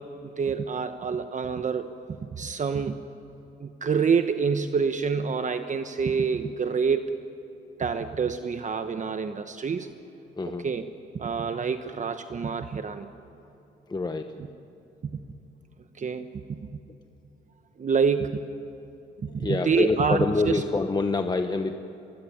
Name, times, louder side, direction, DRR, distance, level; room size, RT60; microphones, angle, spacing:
voice 1, 0.0-1.9 2.2-3.0 3.6-7.2 7.8-9.9 10.4-10.8 11.1-13.1 15.1-15.2 16.0-16.6 17.8-18.4 19.3-20.6, right 5 dB, 40° right, 9 dB, 1.1 m, -27 dB
voice 2, 13.9-14.3 19.4-21.8, left 3 dB, 20° left, 7 dB, 1.1 m, -26 dB
24.5 x 19.0 x 9.8 m, 2.9 s
cardioid pair, 90°, 20 cm